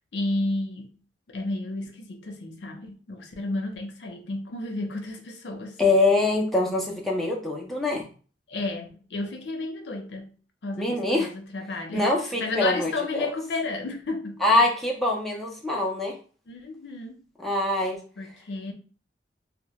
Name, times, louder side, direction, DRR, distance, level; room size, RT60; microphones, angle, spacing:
voice 1, 0.1-1.0 1.3-5.8 8.5-10.3 10.6-12.1 12.4-14.4 16.5-17.2 18.2-18.7, left 2 dB, 75° left, 3 dB, 0.5 m, -32 dB
voice 2, 5.8-8.1 10.8-11.3 11.9-13.3 14.4-16.2 17.4-18.0, left 2 dB, ahead, -2 dB, 0.4 m, -24 dB
2.1 x 2.1 x 2.8 m, 0.38 s
head